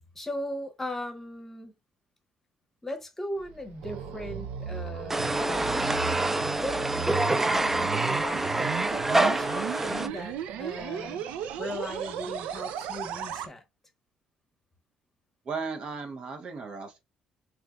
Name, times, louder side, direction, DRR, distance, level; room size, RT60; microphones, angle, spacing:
voice 1, 0.1-1.7 2.8-11.2 11.6-13.6, left 1 dB, 15° left, 0.8 m, -38 dB
sound 1, 3.4-13.5, right 9 dB, 85° right, 0.4 m, -36 dB
sound 2, 5.1-10.1, right 2 dB, 15° right, 0.3 m, -26 dB
voice 2, 15.4-17.0, right 4 dB, 50° right, 0.7 m, -36 dB
3.3 x 2.9 x 2.3 m
cardioid pair, 95°, 2 cm